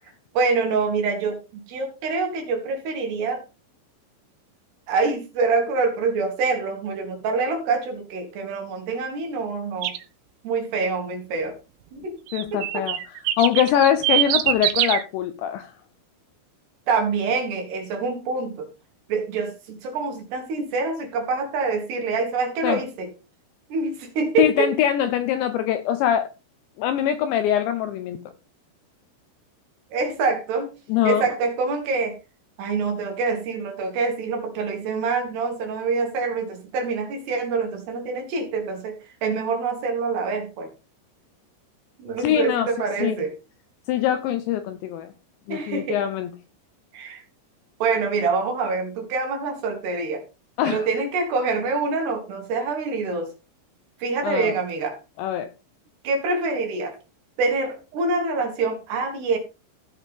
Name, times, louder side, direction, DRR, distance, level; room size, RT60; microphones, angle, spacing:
voice 1, 0.3-3.4 4.9-9.9 10.4-11.6 11.9-12.1 12.5-12.9 16.9-18.7 19.1-23.1 23.7-24.7 29.9-30.7 31.0-32.2 32.6-40.7 42.0-43.3 45.5-46.0 46.9-47.2 47.8-50.2 50.7-53.3 54.0-55.0 56.0-57.0 57.4-59.4, right 4 dB, 60° right, 3.9 m, -25 dB
sound 1, 9.8-10.0 12.3-15.0, right 14 dB, 90° right, 3.7 m, -23 dB
voice 2, 12.3-13.0 13.4-15.7 22.6-22.8 24.4-26.3 26.8-28.2 30.9-31.2 42.2-42.7 43.0-43.2 43.9-45.1 45.5-46.3 50.6-50.8 54.2-54.6 55.2-55.5, left 10 dB, 85° left, 2.6 m, -23 dB
16.0 x 6.5 x 3.6 m
omnidirectional pair, 6.0 m